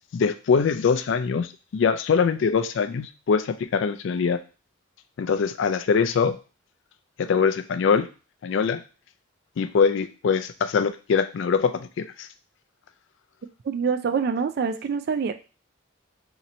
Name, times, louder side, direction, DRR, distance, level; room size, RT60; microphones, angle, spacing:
voice 1, 0.1-4.4 5.2-6.3 7.2-8.1 8.4-8.8 9.6-12.3, left 6 dB, 60° left, 10 dB, 0.3 m, -23 dB
voice 2, 13.7-15.3, right 5 dB, 50° right, 8 dB, 0.3 m, -25 dB
2.9 x 2.6 x 4.1 m, 0.33 s
head